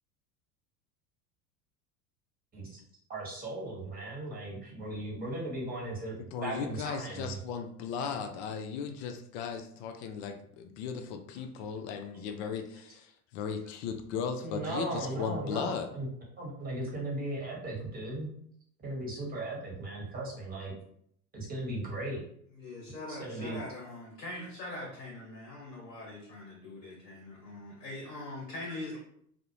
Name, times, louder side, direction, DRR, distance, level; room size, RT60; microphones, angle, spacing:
voice 1, 3.1-7.4 14.4-16.1 16.4-18.3 18.8-20.7 21.3-22.2 23.1-23.6, right 2 dB, 20° right, -2 dB, 1.0 m, -37 dB
voice 2, 6.2-15.9, left 6 dB, 50° left, 6 dB, 0.4 m, -37 dB
voice 3, 22.5-29.0, left 2 dB, 90° left, -3 dB, 0.7 m, -42 dB
2.4 x 2.0 x 2.9 m, 0.68 s
figure-of-eight pair, 75°, 47 cm